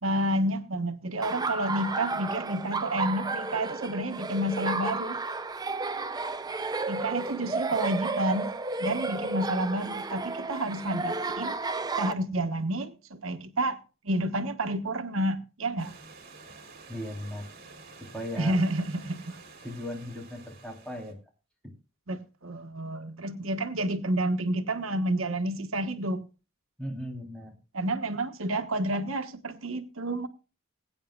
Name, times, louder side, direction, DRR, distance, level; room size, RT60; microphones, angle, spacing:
voice 1, 0.0-5.2 6.9-8.5 8.8-11.5 12.0-13.8 14.0-15.9 18.4-19.3 22.1-26.2 27.7-30.3, right 1 dB, 90° right, 1.3 m, -30 dB
Laughter, 1.2-12.1, right 3 dB, 20° right, 0.6 m, -32 dB
Stream / Liquid, 15.8-21.1, right 4 dB, 50° right, 3.0 m, -50 dB
voice 2, 16.9-17.5 18.1-18.6 19.6-21.2 21.6-21.7 26.8-27.6, equal, 5° left, 3.4 m, -37 dB
21.5 x 9.2 x 2.4 m
head